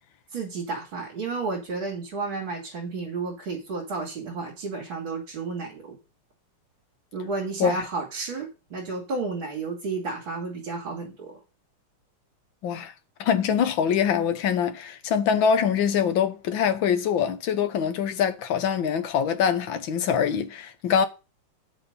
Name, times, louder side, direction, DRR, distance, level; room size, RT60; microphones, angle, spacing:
voice 1, 0.3-6.0 7.1-11.4, right 4 dB, 65° right, 3.6 m, -32 dB
voice 2, 13.2-21.1, left 7 dB, 65° left, 1.7 m, -24 dB
8.0 x 7.0 x 5.4 m
omnidirectional pair, 2.4 m